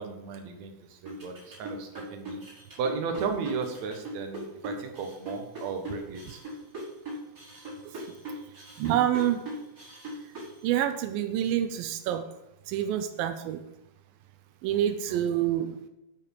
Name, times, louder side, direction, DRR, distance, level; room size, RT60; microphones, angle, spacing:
voice 1, 0.0-2.4 2.8-6.4 14.7-15.2, right 5 dB, 60° right, 4 dB, 2.6 m, -35 dB
sound 1, 1.1-10.6, equal, 25° right, 5.3 m, -39 dB
voice 2, 8.8-9.5 10.6-12.2 12.7-13.6 14.6-15.8, right 11 dB, 85° right, 10 dB, 2.5 m, -27 dB
11.0 x 6.6 x 7.3 m, 0.94 s
omnidirectional pair, 4.0 m